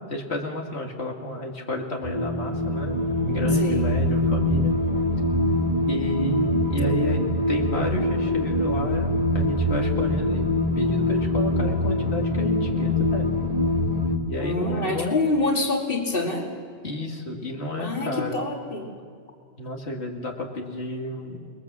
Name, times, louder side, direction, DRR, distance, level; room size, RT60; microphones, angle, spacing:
voice 1, 0.1-4.7 5.9-10.4 10.7-13.3 14.3-15.2 16.8-18.4 19.6-21.5, left 1 dB, 85° left, 1 dB, 2.5 m, -31 dB
sound 1, 2.0-14.2, left 1 dB, 40° right, 1.9 m, -23 dB
voice 2, 14.4-16.5 17.8-18.9, left 2 dB, 60° left, 1 dB, 2.5 m, -26 dB
29.0 x 21.5 x 7.4 m, 2.2 s
omnidirectional pair, 1.1 m